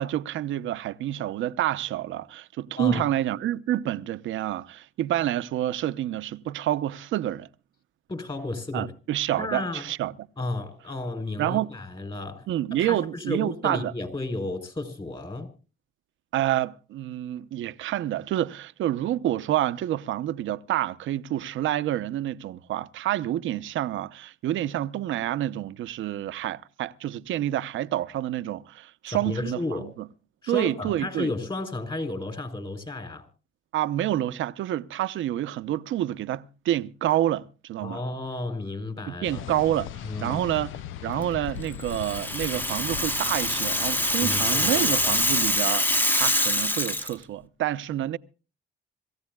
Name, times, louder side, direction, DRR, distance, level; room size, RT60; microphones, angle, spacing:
voice 1, 0.0-7.5 8.7-10.3 11.4-11.7 12.5-13.9 16.3-30.1 30.5-31.3 33.7-38.0 39.1-40.7 41.0-48.2, right 13 dB, 75° right, 0.8 m, -28 dB
voice 2, 2.8-3.1 8.1-8.9 9.4-9.8 10.4-12.5 12.7-15.5 29.1-29.9 30.4-33.3 37.8-39.5 40.0-40.4 44.2-45.1, left 2 dB, 25° left, 3.9 m, -33 dB
sound 1, 39.2-45.6, left 10 dB, 85° left, 0.6 m, -39 dB
Rattle (instrument), 41.9-47.1, left 1 dB, 10° left, 1.1 m, -25 dB
26.5 x 15.0 x 2.3 m
cardioid pair, 90°, 20 cm